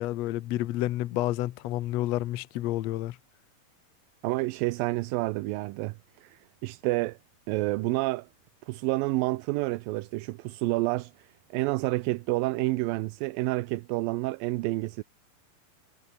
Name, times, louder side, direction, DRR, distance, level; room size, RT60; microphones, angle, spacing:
voice 1, 0.0-3.2, left 15 dB, 80° left, 1.5 m, -30 dB
voice 2, 4.2-7.2 7.5-8.3 8.7-15.0, right 21 dB, 80° right, 2.3 m, -29 dB
omnidirectional pair, 4.3 m